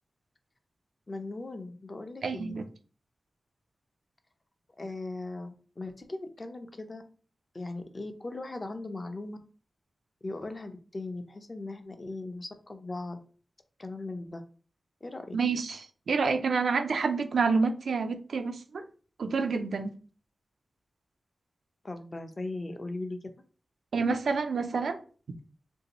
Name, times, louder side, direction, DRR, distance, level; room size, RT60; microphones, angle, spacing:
voice 1, 1.1-2.6 4.8-7.0 7.5-9.4 10.2-13.2 13.8-14.4 15.0-15.4 21.8-23.2, left 2 dB, 35° left, 0.5 m, -38 dB
voice 2, 2.2-2.6 15.3-15.8 16.1-18.8 19.2-19.9 23.9-25.0, right 4 dB, 85° right, 0.3 m, -28 dB
3.3 x 2.7 x 2.9 m
wide cardioid pair, 90°, 0 cm